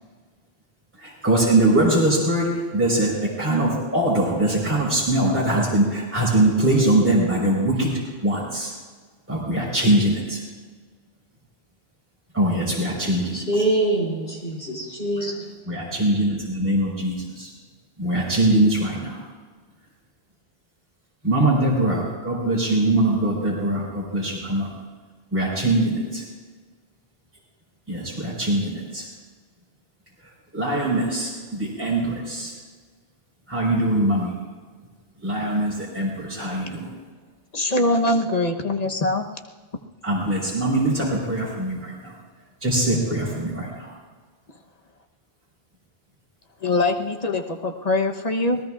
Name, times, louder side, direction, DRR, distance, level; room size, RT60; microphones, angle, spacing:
voice 1, 1.0-2.5 2.7-3.1 3.4-7.9 8.2-8.7 9.3-10.4 12.3-13.3 15.7-17.5 18.0-19.2 21.2-24.7 25.3-26.2 27.9-29.0 30.5-32.5 33.5-34.3 35.2-36.9 40.0-42.1 42.6-43.9, right 1 dB, 10° right, -6 dB, 4.5 m, -22 dB
voice 2, 13.3-15.4, right 1 dB, 70° left, -1 dB, 4.1 m, -24 dB
voice 3, 37.5-39.3 46.6-48.6, left 2 dB, 40° left, 3 dB, 1.1 m, -23 dB
28.0 x 19.0 x 2.5 m, 1.5 s
omnidirectional pair, 1.0 m